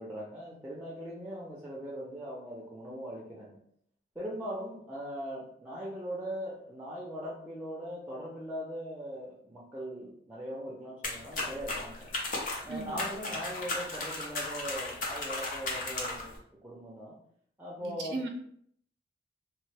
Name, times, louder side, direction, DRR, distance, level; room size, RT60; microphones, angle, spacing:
voice 1, 0.0-3.6 4.2-12.1 12.6-17.2 17.6-18.3, equal, 10° right, -6 dB, 0.5 m, -40 dB
sound 1, 11.0-16.4, left 2 dB, 50° left, 0.7 m, -36 dB
voice 2, 12.7-13.0 17.8-18.3, right 3 dB, 70° right, 3 dB, 0.4 m, -37 dB
3.1 x 2.1 x 3.2 m, 0.65 s
head